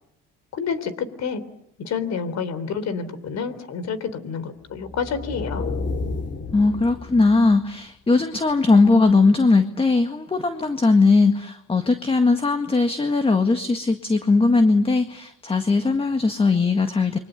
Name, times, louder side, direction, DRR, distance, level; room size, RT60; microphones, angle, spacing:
voice 1, 0.5-1.4 1.8-5.7, left 6 dB, 55° left, 15 dB, 3.7 m, -29 dB
sound 1, 4.8-7.7, left 3 dB, 35° left, 2.8 m, -31 dB
voice 2, 6.5-17.2, left 3 dB, 20° left, 7 dB, 1.9 m, -19 dB
29.5 x 24.5 x 8.2 m, 0.79 s
cardioid pair, 115°, 31 cm